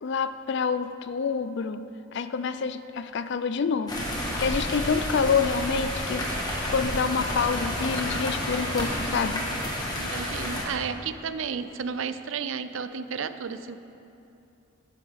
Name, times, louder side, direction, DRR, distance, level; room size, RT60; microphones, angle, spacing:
voice 1, 0.0-1.8 2.1-4.0 4.4-6.3 6.7-9.4, left 5 dB, 55° left, 12 dB, 0.4 m, -27 dB
sound 1, 3.9-10.7, left 1 dB, 20° left, 1.4 m, -30 dB
voice 2, 9.9-13.8, right 6 dB, 65° right, 12 dB, 0.4 m, -32 dB
13.5 x 9.7 x 3.5 m, 2.8 s
head